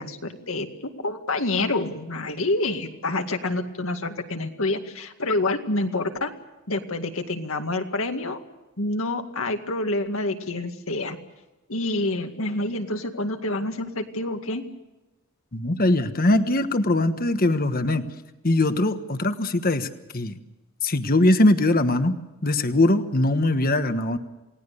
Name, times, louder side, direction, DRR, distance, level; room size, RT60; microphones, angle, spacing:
voice 1, 0.0-6.3 6.7-8.4 8.8-11.2 11.7-14.6, left 2 dB, 70° left, 6 dB, 2.2 m, -27 dB
voice 2, 15.5-18.1 18.4-19.9 20.1-20.3 20.8-24.2, left 2 dB, 45° left, 9 dB, 1.3 m, -21 dB
28.5 x 18.5 x 6.9 m, 1.0 s
head